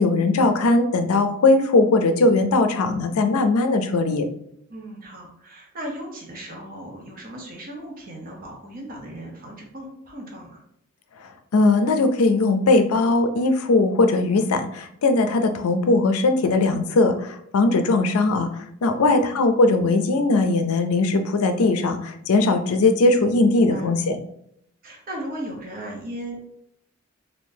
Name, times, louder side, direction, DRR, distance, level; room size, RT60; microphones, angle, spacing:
voice 1, 0.0-4.3 11.2-24.2, left 2 dB, 80° left, 7 dB, 0.4 m, -19 dB
voice 2, 4.7-10.6 18.9-19.4 23.0-23.9 24.8-26.4, right 1 dB, 40° right, -1 dB, 0.7 m, -37 dB
3.5 x 2.6 x 2.6 m, 0.73 s
head